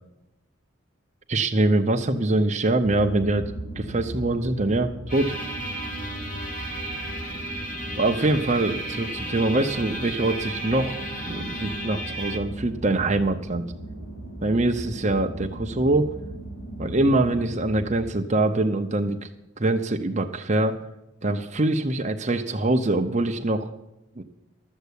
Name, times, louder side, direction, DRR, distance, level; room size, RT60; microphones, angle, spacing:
voice 1, 1.3-5.3 8.0-13.6 14.4-16.1 16.8-19.3 19.6-20.8 21.2-23.7 24.2-24.3, right 2 dB, 35° right, 4 dB, 0.7 m, -24 dB
sound 1, 2.8-17.9, right 1 dB, 70° left, 3.3 m, -37 dB
sound 2, 5.1-12.4, right 1 dB, 40° left, 2.2 m, -34 dB
12.5 x 8.1 x 8.3 m, 0.94 s
head